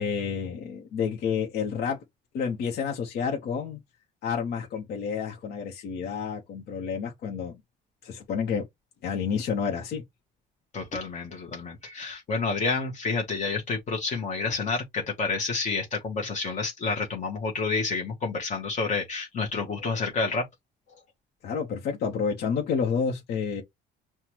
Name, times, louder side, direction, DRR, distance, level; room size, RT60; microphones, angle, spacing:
voice 1, 0.0-2.0 2.3-3.8 4.2-7.6 8.0-8.7 9.0-10.0 21.4-23.6, left 6 dB, 70° left, 1.0 m, -29 dB
voice 2, 10.7-20.5, left 4 dB, 45° left, 1.1 m, -29 dB
5.7 x 2.3 x 3.0 m
cardioid pair, 110°, 17 cm